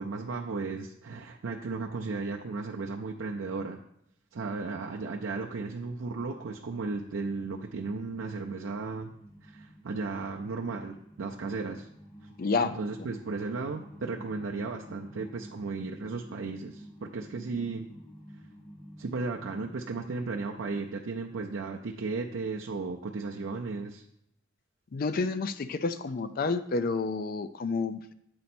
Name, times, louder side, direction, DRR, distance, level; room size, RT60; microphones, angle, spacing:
voice 1, 0.0-3.8 4.3-9.1 9.4-11.9 12.6-17.9 19.0-24.0, right 4 dB, 80° right, 0 dB, 0.5 m, -35 dB
sound 1, 4.2-20.8, equal, 20° left, 0.8 m, -52 dB
voice 2, 12.4-12.8 24.9-28.1, left 4 dB, 50° left, 12 dB, 0.4 m, -29 dB
7.8 x 4.1 x 4.3 m, 0.76 s
head